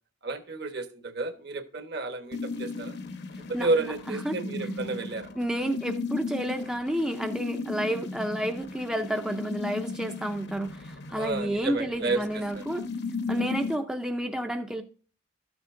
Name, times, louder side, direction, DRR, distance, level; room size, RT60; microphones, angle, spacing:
voice 1, 0.2-3.0 3.5-5.3 11.1-12.6 13.3-13.5, right 3 dB, 55° right, 8 dB, 1.2 m, -31 dB
sound 1, 2.3-13.8, left 3 dB, 55° left, 0.9 m, -36 dB
voice 2, 3.5-4.4 5.4-12.8 13.3-14.8, right 1 dB, 5° right, 4 dB, 0.5 m, -30 dB
13.0 x 7.0 x 2.5 m, 0.40 s
head